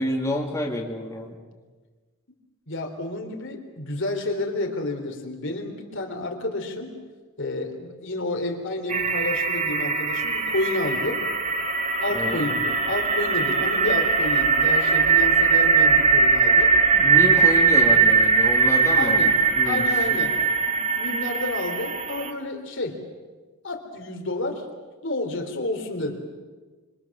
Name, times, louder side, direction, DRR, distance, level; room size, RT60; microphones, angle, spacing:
voice 1, 0.0-1.4 12.1-12.4 17.0-19.8, equal, 15° left, -1 dB, 2.9 m, -28 dB
voice 2, 2.7-6.9 7.4-11.2 12.0-16.7 19.0-19.4 19.6-20.4 20.7-23.0 23.6-24.6 25.0-26.2, left 2 dB, 60° left, 3 dB, 3.7 m, -30 dB
sound 1, 8.9-22.3, right 5 dB, 35° right, 1.7 m, -20 dB
26.5 x 25.5 x 7.4 m, 1.3 s
head